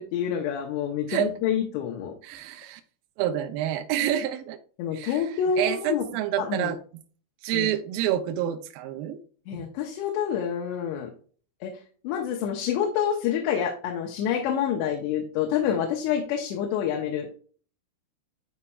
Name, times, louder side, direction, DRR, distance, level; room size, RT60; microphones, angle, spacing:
voice 1, 0.0-2.1 4.8-6.0 6.4-6.7 7.5-7.7 9.5-11.1 11.6-11.7 12.0-17.3, left 8 dB, 85° left, 3.1 m, -27 dB
voice 2, 2.2-2.8 3.2-4.6 4.9-6.8 7.4-9.2 9.6-9.7, right 11 dB, 80° right, 2.2 m, -28 dB
11.0 x 4.3 x 2.4 m
omnidirectional pair, 4.8 m